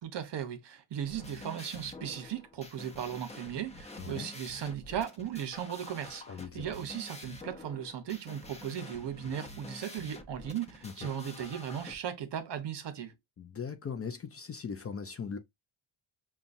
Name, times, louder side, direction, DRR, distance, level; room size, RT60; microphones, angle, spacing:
voice 1, 0.0-6.2 6.5-13.1, right 9 dB, 55° right, 1.0 m, -37 dB
sound 1, 1.0-11.9, left 1 dB, 15° left, 0.8 m, -48 dB
voice 2, 4.0-4.3 6.3-6.7 10.8-11.1 13.4-15.4, left 6 dB, 30° left, 0.5 m, -39 dB
5.4 x 2.4 x 2.6 m
cardioid pair, 115°, 49 cm